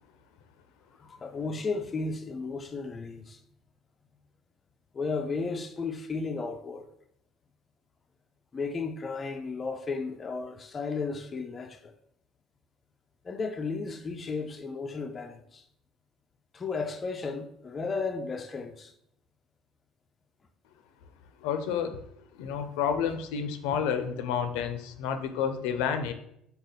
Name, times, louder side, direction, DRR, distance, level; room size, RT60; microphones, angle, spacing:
voice 1, 1.0-3.4 4.9-6.9 8.5-11.9 13.2-15.6 16.5-18.9, left 4 dB, 20° left, 0.3 m, -34 dB
voice 2, 21.4-22.0 22.3-26.1, left 7 dB, 90° left, 0.5 m, -30 dB
4.9 x 2.3 x 4.0 m
cardioid pair, 155°, 0 cm